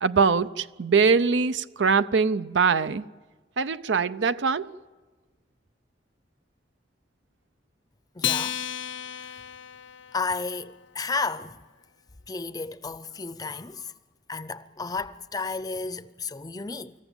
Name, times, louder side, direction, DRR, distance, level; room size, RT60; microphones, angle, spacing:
voice 1, 0.0-3.0 3.6-4.7, right 5 dB, 75° right, 0.6 m, -22 dB
voice 2, 8.1-8.6 9.3-9.4 10.1-11.6 12.3-13.9 14.3-16.9, left 4 dB, 20° left, 0.6 m, -32 dB
Acoustic guitar, 8.2-10.9, left 10 dB, 80° left, 0.6 m, -33 dB
25.5 x 14.5 x 9.0 m
head